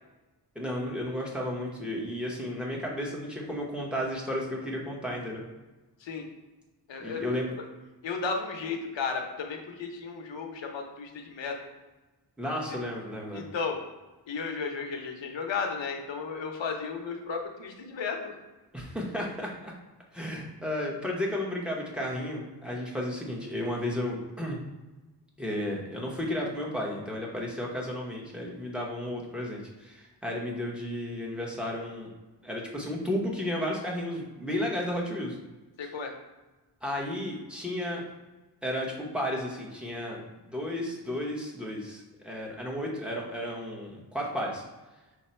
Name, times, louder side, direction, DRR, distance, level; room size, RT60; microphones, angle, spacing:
voice 1, 0.5-5.4 7.0-7.5 12.4-13.4 18.7-19.7 20.1-24.6 25.4-32.1 32.4-35.4 36.8-38.0 38.6-44.6, left 1 dB, ahead, -3 dB, 0.9 m, -33 dB
voice 2, 6.9-7.2 8.0-11.6 13.3-13.8 14.3-18.4 35.8-36.1, left 5 dB, 90° left, 3 dB, 0.8 m, -34 dB
5.4 x 2.2 x 4.3 m, 1.1 s
wide cardioid pair, 125°, 43 cm